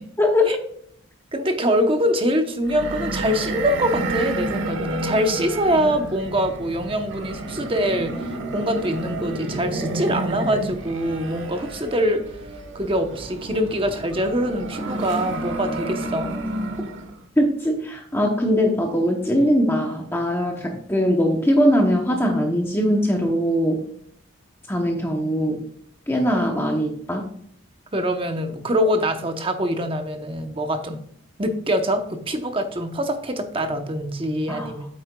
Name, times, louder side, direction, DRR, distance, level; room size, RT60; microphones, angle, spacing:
voice 1, 0.2-0.6 17.4-23.8 24.7-25.6 26.1-27.3 34.5-34.7, equal, 10° left, 2 dB, 0.8 m, -21 dB
voice 2, 1.3-12.4 12.7-16.3 27.9-31.0 31.4-34.9, equal, 25° right, 6 dB, 0.9 m, -24 dB
sound 1, 2.6-17.2, right 2 dB, 65° right, 1.2 m, -30 dB
8.5 x 8.4 x 2.3 m, 0.64 s
head